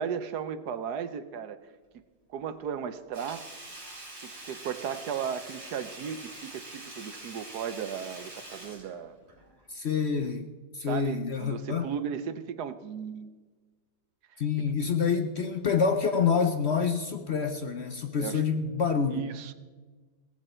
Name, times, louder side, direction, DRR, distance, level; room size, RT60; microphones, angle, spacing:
voice 1, 0.0-1.6 2.3-3.4 4.2-9.2 10.9-13.3 18.2-18.4 19.1-19.5, right 7 dB, 70° right, 12 dB, 1.3 m, -35 dB
Sink (filling or washing), 3.1-9.7 10.0-10.1, right 2 dB, 35° right, 3.7 m, -45 dB
voice 2, 9.7-10.5 10.7-11.9 14.4-19.2, left 6 dB, 50° left, 6 dB, 0.8 m, -27 dB
17.0 x 14.5 x 4.4 m, 1.4 s
omnidirectional pair, 1.9 m